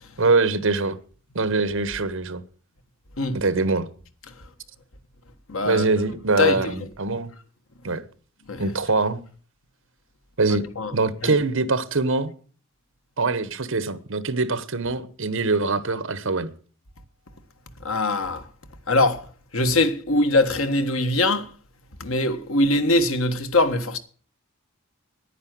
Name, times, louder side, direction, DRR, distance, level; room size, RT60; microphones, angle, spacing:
voice 1, 0.2-1.0 1.3-2.4 3.3-3.9 5.6-7.3 7.8-8.0 8.6-9.2 10.4-12.3 13.2-16.5, right 3 dB, 65° right, 1.2 m, -23 dB
voice 2, 5.5-5.8 6.4-6.9 8.5-8.6 10.8-10.9 11.2-11.4 17.8-18.5 18.9-19.3 19.5-21.5 22.0-24.0, left 2 dB, 70° left, 1.5 m, -22 dB
10.0 x 9.8 x 7.7 m
head